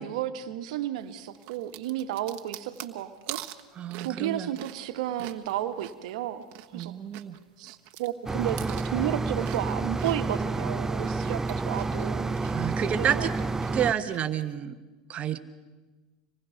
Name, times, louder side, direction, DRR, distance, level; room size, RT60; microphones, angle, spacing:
voice 1, 0.0-3.4 4.0-6.4 6.7-6.9 7.6-8.6 8.8-12.4 13.0-13.3, right 12 dB, 70° right, 9 dB, 1.5 m, -32 dB
sound 1, 1.3-6.9 7.1-10.5 10.9-14.4, right 16 dB, 55° right, 1.3 m, -44 dB
voice 2, 3.8-4.5 6.7-7.3 12.5-13.3 13.7-14.8 15.1-15.4, right 9 dB, 35° right, 11 dB, 1.2 m, -29 dB
sound 2, 8.3-13.9, right 3 dB, 10° right, 0.6 m, -29 dB
26.0 x 19.5 x 5.8 m, 1.2 s
hypercardioid pair, 105°, 4 cm